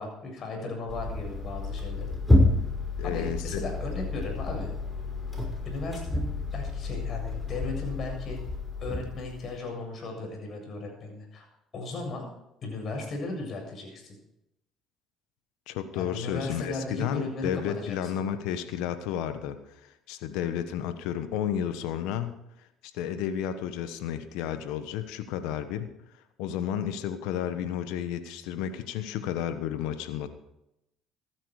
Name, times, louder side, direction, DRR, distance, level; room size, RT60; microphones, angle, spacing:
voice 1, 0.0-2.2 3.0-4.7 5.6-8.4 8.8-11.5 11.7-12.3 12.6-14.1 15.9-18.1, left 2 dB, 50° left, 2 dB, 7.4 m, -36 dB
sound 1, 0.9-9.5, left 2 dB, 10° left, 5.9 m, -29 dB
voice 2, 3.0-3.6 15.7-22.4 22.8-25.9 26.4-30.3, left 10 dB, 80° left, 10 dB, 1.2 m, -32 dB
15.5 x 12.5 x 4.9 m, 0.84 s
supercardioid pair, 75°, 0 cm